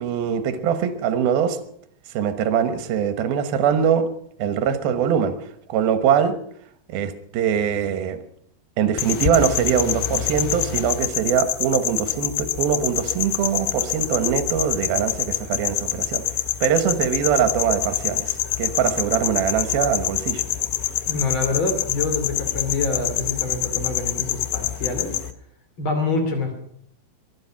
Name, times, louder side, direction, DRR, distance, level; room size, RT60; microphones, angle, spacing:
voice 1, 0.0-1.6 2.1-4.1 4.4-5.4 5.7-6.4 6.9-8.2 8.8-16.2 16.6-20.4, right 8 dB, 75° right, 10 dB, 3.0 m, -22 dB
sound 1, 9.0-25.3, left 13 dB, 75° left, 1.8 m, -26 dB
voice 2, 21.1-25.1 25.8-26.5, left 3 dB, 35° left, 5 dB, 3.2 m, -26 dB
23.0 x 10.5 x 5.8 m, 0.67 s
omnidirectional pair, 4.4 m